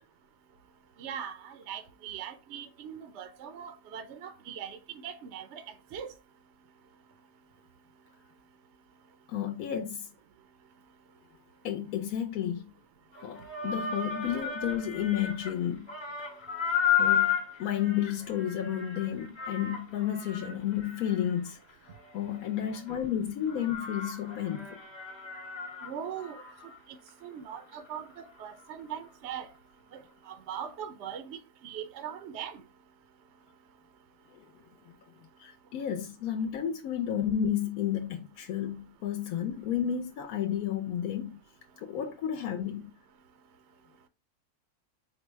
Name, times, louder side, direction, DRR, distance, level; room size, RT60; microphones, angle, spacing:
voice 1, 1.0-5.6 5.9-6.1 25.8-26.4 27.2-29.5 29.9-32.6, right 8 dB, 65° right, 0.7 m, -40 dB
voice 2, 9.3-10.1 11.6-12.7 13.2-15.9 17.0-21.6 22.1-24.8 35.4-41.4 41.8-42.9, left 10 dB, 70° left, 1.1 m, -32 dB
sound 1, 13.1-15.6 15.9-23.0 23.5-26.8 27.1-27.2 27.7-27.8, left 8 dB, 25° left, 0.8 m, -33 dB
4.6 x 2.1 x 4.4 m
omnidirectional pair, 1.6 m